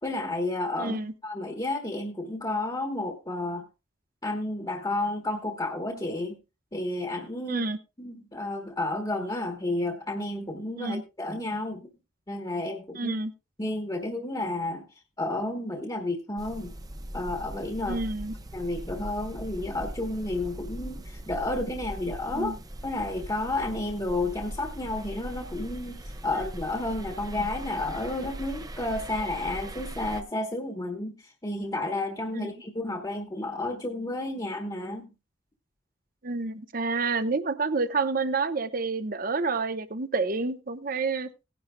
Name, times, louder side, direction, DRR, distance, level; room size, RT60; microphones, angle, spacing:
voice 1, 0.0-1.0 1.2-3.6 4.2-6.4 6.7-7.7 8.0-11.9 12.3-13.1 13.6-14.8 15.2-16.7 17.1-18.0 18.5-22.5 22.8-35.1, left 2 dB, 20° left, 3 dB, 1.2 m, -31 dB
voice 2, 0.8-1.1 7.5-7.8 10.8-11.0 12.9-13.3 17.9-18.3 22.3-22.6 32.3-32.5 36.2-41.3, right 3 dB, 45° right, 11 dB, 0.9 m, -29 dB
sound 1, 16.4-30.2, right 1 dB, 20° right, 0.7 m, -40 dB
18.0 x 10.5 x 2.3 m, 0.28 s
head